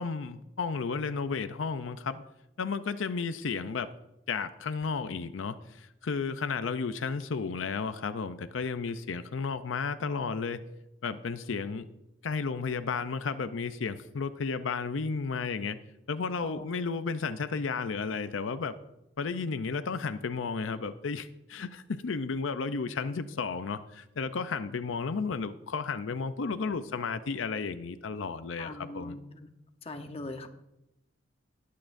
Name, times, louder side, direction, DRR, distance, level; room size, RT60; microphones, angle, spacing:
voice 1, 0.0-2.2 2.6-3.9 4.3-10.6 11.0-11.8 12.2-15.8 16.1-18.7 19.2-29.2, left 5 dB, 85° left, 11 dB, 0.5 m, -33 dB
voice 2, 28.6-29.5 29.8-30.5, left 2 dB, 30° left, 6 dB, 0.9 m, -41 dB
19.5 x 8.5 x 2.6 m, 0.89 s
head